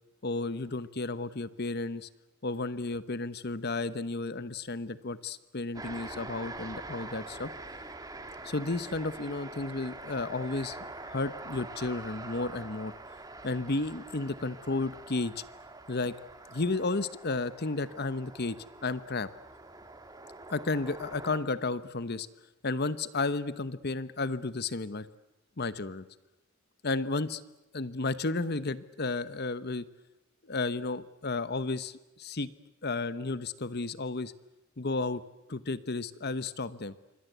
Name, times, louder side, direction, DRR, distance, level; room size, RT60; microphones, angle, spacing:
voice 1, 0.2-2.1 2.4-7.5 8.4-10.8 11.0-12.9 13.4-15.4 15.9-16.1 16.5-18.6 18.8-19.3 20.5-22.3 22.6-25.1 25.6-26.0 26.8-27.4 27.7-29.8 30.5-32.5 32.8-34.3 34.8-35.2 35.5-37.0, left 3 dB, 50° left, 14 dB, 1.0 m, -32 dB
sound 1, 5.7-21.4, right 2 dB, 15° right, 1.9 m, -45 dB
27.0 x 24.5 x 8.2 m, 0.99 s
head